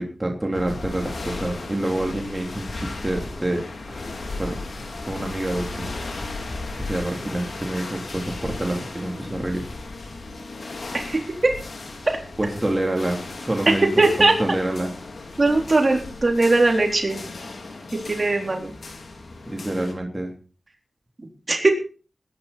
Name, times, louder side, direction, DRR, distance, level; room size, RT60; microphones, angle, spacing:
voice 1, 0.0-4.1 4.4-4.6 5.0-5.9 6.8-9.7 12.4-14.9 19.5-20.3, right 1 dB, 20° right, 1 dB, 3.2 m, -27 dB
sound 1, 0.5-19.9, left 3 dB, 80° left, 3.7 m, -35 dB
voice 2, 10.9-11.5 13.7-14.3 15.4-17.2 17.9-18.7 21.5-21.7, right 2 dB, 45° right, 3 dB, 3.8 m, -19 dB
20.5 x 10.5 x 4.2 m, 0.37 s
wide cardioid pair, 85°, 0 cm